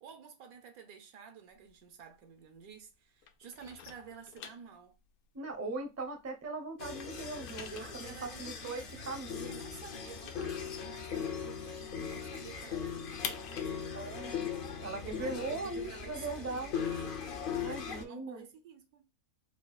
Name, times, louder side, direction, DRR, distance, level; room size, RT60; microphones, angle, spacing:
voice 1, 0.0-5.0 7.8-14.2 14.9-19.1, right 7 dB, 70° right, 1.2 m, -51 dB
sound 1, 1.5-2.9 3.2-6.4 6.7-11.7 12.1-12.2 12.5-16.2, left 8 dB, 80° left, 1.1 m, -48 dB
voice 2, 5.3-9.5 10.0-10.2 13.9-14.5 14.8-16.7 17.6-18.4, right 3 dB, 20° right, 0.4 m, -40 dB
sound 2, 6.8-18.0, left 7 dB, 60° left, 0.5 m, -39 dB
4.5 x 2.3 x 2.3 m
omnidirectional pair, 1.6 m